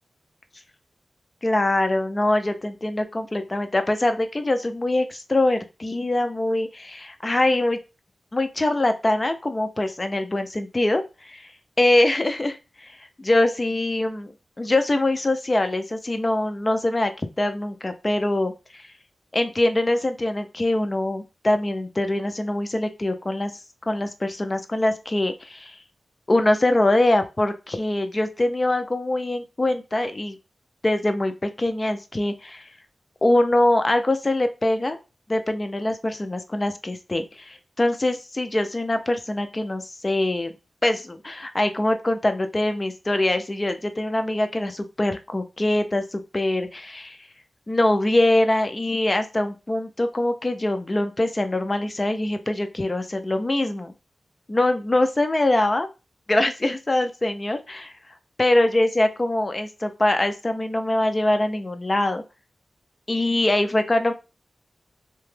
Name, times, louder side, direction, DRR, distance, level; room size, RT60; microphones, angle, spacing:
voice 1, 1.4-7.8 8.3-11.5 11.8-18.9 19.3-23.5 23.9-25.8 26.3-30.4 30.8-32.7 33.2-35.0 35.3-40.5 40.8-47.2 47.7-53.9 54.5-55.9 56.3-57.9 58.4-62.2 63.1-64.1, left 1 dB, 25° left, 7 dB, 0.4 m, -23 dB
2.8 x 2.2 x 3.1 m, 0.29 s
wide cardioid pair, 130°, 0 cm